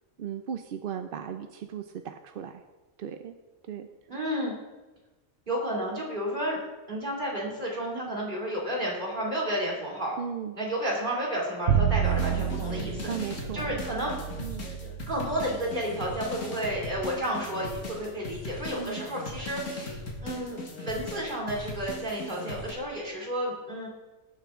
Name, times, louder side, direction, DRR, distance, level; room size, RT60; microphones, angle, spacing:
voice 1, 0.2-2.6 3.0-3.3 3.7-3.9 10.2-10.6 13.1-13.8 14.4-14.7 18.8-19.0, right 8 dB, 60° right, 7 dB, 0.6 m, -36 dB
voice 2, 4.1-4.5 5.5-6.6 6.9-10.1 10.5-14.1 15.1-23.9, equal, 35° right, -3 dB, 2.9 m, -31 dB
Bowed string instrument, 11.7-17.8, right 9 dB, 75° right, 1.1 m, -31 dB
sound 1, 12.0-22.7, left 2 dB, 80° left, 2.2 m, -39 dB
18.5 x 6.8 x 3.6 m, 1.2 s
omnidirectional pair, 1.3 m